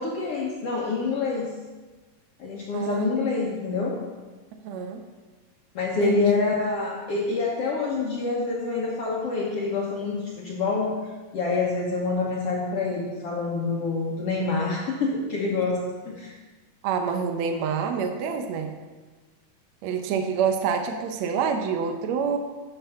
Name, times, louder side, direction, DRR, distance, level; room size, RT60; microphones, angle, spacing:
voice 1, 0.0-1.5 2.4-4.0 5.7-11.0 11.3-16.3, left 3 dB, 60° left, -3 dB, 1.6 m, -27 dB
voice 2, 2.7-3.2 4.6-5.0 6.0-6.3 16.8-18.7 19.8-22.4, right 6 dB, 75° right, 5 dB, 1.6 m, -27 dB
11.5 x 5.9 x 5.7 m, 1.3 s
omnidirectional pair, 4.0 m